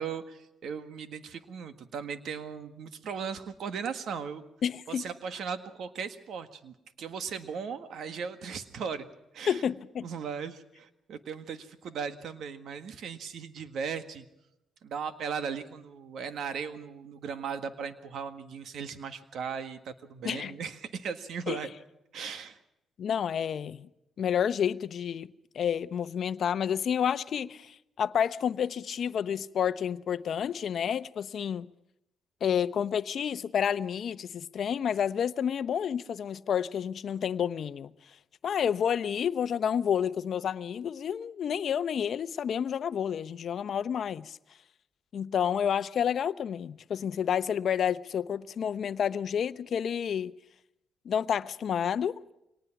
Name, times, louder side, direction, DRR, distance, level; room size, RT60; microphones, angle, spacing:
voice 1, 0.0-4.4 4.9-9.1 9.3-9.6 10.0-14.2 14.8-21.7 22.1-22.6, right 6 dB, 70° right, 1.7 m, -37 dB
voice 2, 4.6-5.0 9.5-10.1 20.2-20.5 21.5-21.6 23.0-23.9 24.2-25.3 25.5-31.7 32.4-37.9 38.4-44.4 45.1-50.3 51.0-52.3, left 8 dB, 60° left, 0.8 m, -30 dB
24.0 x 19.0 x 5.9 m
cardioid pair, 90°, 0 cm